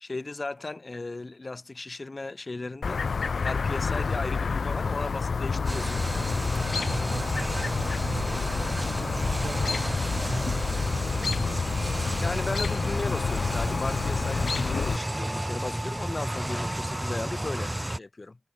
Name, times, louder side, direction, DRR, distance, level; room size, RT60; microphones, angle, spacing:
voice 1, 0.0-3.0 3.4-6.0 6.6-7.0 12.2-18.4, left 3 dB, 40° left, 0.9 m, -36 dB
Chirp tweet, 2.8-15.0, left 5 dB, 75° left, 0.3 m, -29 dB
sound 1, 5.7-14.9, equal, 5° left, 6.7 m, -58 dB
sound 2, 5.7-18.0, right 1 dB, 15° right, 0.7 m, -32 dB
voice 2, 6.8-12.4, right 5 dB, 70° right, 0.9 m, -40 dB
cardioid pair, 50°, 0 cm